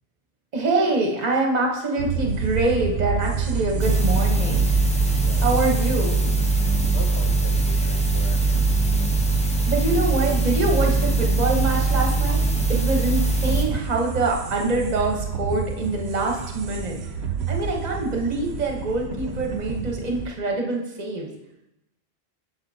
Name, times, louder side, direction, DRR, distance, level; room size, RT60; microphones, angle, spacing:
voice 1, 0.5-4.7 5.4-6.1 7.8-8.0 9.7-12.4 12.7-17.0 17.5-21.3, right 2 dB, 45° right, 1 dB, 1.0 m, -25 dB
sound 1, 2.0-20.3, right 6 dB, 85° right, 0.9 m, -29 dB
sound 2, 3.8-13.6, right 3 dB, 10° left, 0.5 m, -22 dB
voice 2, 6.9-8.6, left 4 dB, 80° left, 5 dB, 1.0 m, -41 dB
7.9 x 6.2 x 2.7 m, 0.88 s
omnidirectional pair, 1.0 m